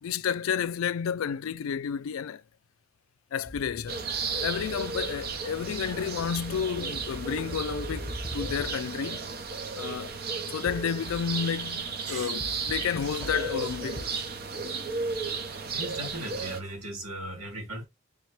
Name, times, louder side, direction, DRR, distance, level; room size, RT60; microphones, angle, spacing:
voice 1, 0.0-2.4 3.3-4.1 4.4-9.3 9.8-10.1 10.5-14.1, left 7 dB, 80° left, 0.3 m, -31 dB
sound 1, 3.4-9.1 10.7-11.5 12.4-14.1, equal, 15° left, 0.9 m, -42 dB
sound 2, 3.9-16.6, right 4 dB, 45° right, 0.7 m, -34 dB
voice 2, 15.7-17.8, right 1 dB, 90° right, 2.2 m, -38 dB
3.6 x 2.9 x 4.6 m
head